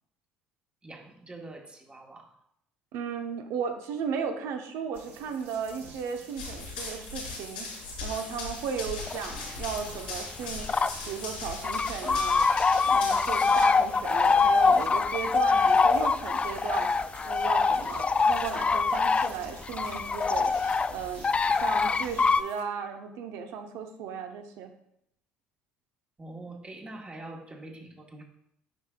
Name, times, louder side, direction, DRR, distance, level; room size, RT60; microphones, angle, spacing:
voice 1, 0.8-2.3 18.2-18.3 26.2-28.3, right 2 dB, 20° right, 2 dB, 1.4 m, -44 dB
voice 2, 2.9-7.7 8.0-10.7 11.1-12.4 12.9-16.9 17.3-24.7, right 7 dB, 65° right, 5 dB, 0.9 m, -35 dB
sound 1, 4.9-22.6, right 3 dB, 50° right, 1.7 m, -50 dB
Run, 6.4-13.6, left 3 dB, 85° left, 2.9 m, -39 dB
sound 2, 9.1-9.5 9.9-11.0 11.2-11.3 11.6-22.4, left 4 dB, 25° left, 0.3 m, -24 dB
9.4 x 5.8 x 2.3 m, 0.73 s
hypercardioid pair, 60°, 5 cm